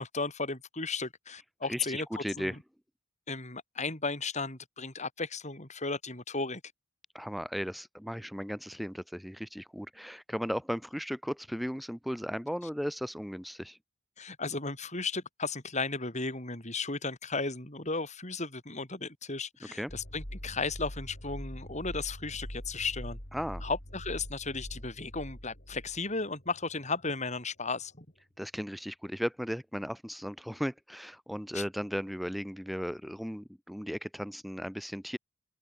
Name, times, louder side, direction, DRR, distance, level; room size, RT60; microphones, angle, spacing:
voice 1, 0.0-2.6 3.3-6.6 14.2-23.2 23.6-28.1 31.5-31.6, left 3 dB, 35° left, 6.2 m, -35 dB
voice 2, 1.7-2.6 7.1-13.8 19.7-19.9 23.3-23.6 28.4-35.2, equal, ahead, 4.7 m, -36 dB
sound 1, 19.9-27.1, equal, 50° left, 7.3 m, -43 dB
open air
head